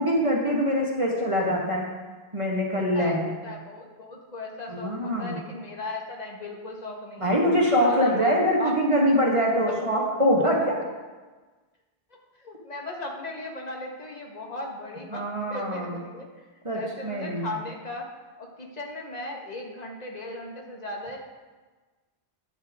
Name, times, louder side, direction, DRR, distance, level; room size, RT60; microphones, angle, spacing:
voice 1, 0.0-1.9 2.3-3.3 4.7-5.4 7.2-10.8 15.1-15.9 16.7-17.5, equal, 30° right, -3 dB, 1.9 m, -24 dB
voice 2, 2.7-7.3 7.8-8.8 12.4-15.2 15.5-16.5 16.7-18.1 18.4-21.2, left 2 dB, 40° left, -1 dB, 1.8 m, -37 dB
12.0 x 9.9 x 3.7 m, 1.3 s
omnidirectional pair, 1.1 m